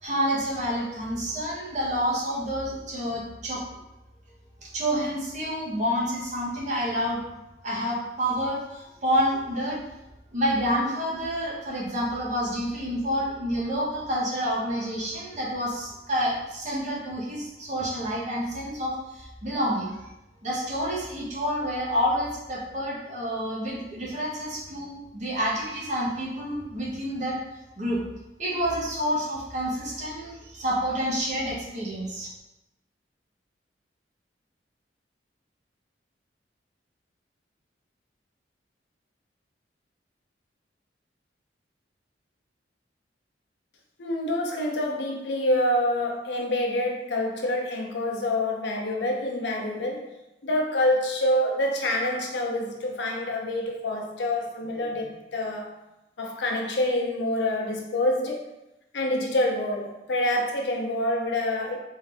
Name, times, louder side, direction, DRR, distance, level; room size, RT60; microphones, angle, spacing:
voice 1, 0.0-3.6 4.6-7.2 7.6-9.8 10.3-19.9 20.4-27.4 27.8-28.0 28.4-32.3, equal, 40° right, -5 dB, 1.1 m, -28 dB
voice 2, 44.0-50.1 50.4-55.7 56.2-58.5 58.9-61.8, left 1 dB, 70° left, 0 dB, 0.7 m, -26 dB
3.8 x 2.7 x 3.3 m, 0.94 s
head